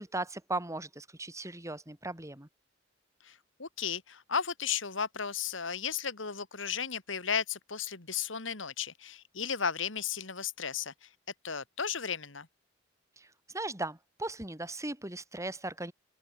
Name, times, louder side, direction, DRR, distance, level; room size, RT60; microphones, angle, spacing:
voice 1, 0.0-2.5 13.2-15.9, right 2 dB, 15° right, 3.0 m, -38 dB
voice 2, 3.2-11.1 11.4-12.5, left 7 dB, 80° left, 2.5 m, -34 dB
open air
head